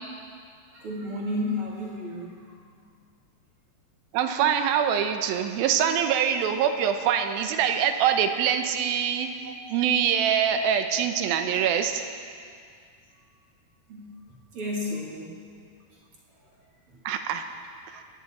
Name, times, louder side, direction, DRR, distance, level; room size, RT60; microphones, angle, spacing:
voice 1, 0.7-2.4 9.4-9.6 13.9-14.1 14.5-15.4, left 1 dB, 45° right, -3 dB, 2.2 m, -32 dB
voice 2, 4.1-9.3 9.7-12.1 17.1-17.4 17.9-18.0, right 8 dB, 75° right, 7 dB, 2.2 m, -24 dB
29.0 x 10.5 x 4.2 m, 2.2 s
omnidirectional pair, 5.0 m